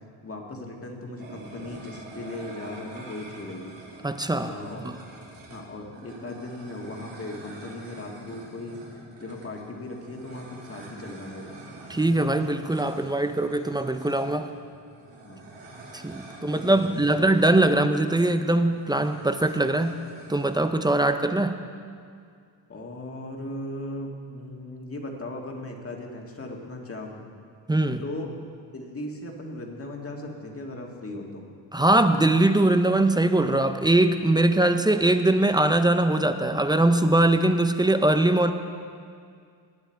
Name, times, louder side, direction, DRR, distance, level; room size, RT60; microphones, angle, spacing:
voice 1, 0.2-3.7 4.5-4.8 5.5-8.8 9.2-11.5 15.2-15.4 16.5-17.0 17.7-17.8 22.7-27.2 28.0-28.3 28.7-31.4, left 1 dB, 30° left, 1 dB, 1.8 m, -37 dB
sound 1, 1.2-20.6, right 2 dB, 70° right, 3.2 m, -46 dB
voice 2, 4.0-4.5 4.8-5.0 11.9-14.5 15.9-20.0 20.3-21.6 27.7-28.0 31.7-38.5, right 1 dB, 10° right, 9 dB, 0.4 m, -22 dB
19.5 x 9.3 x 4.5 m, 2.2 s
cardioid pair, 115°, 45 cm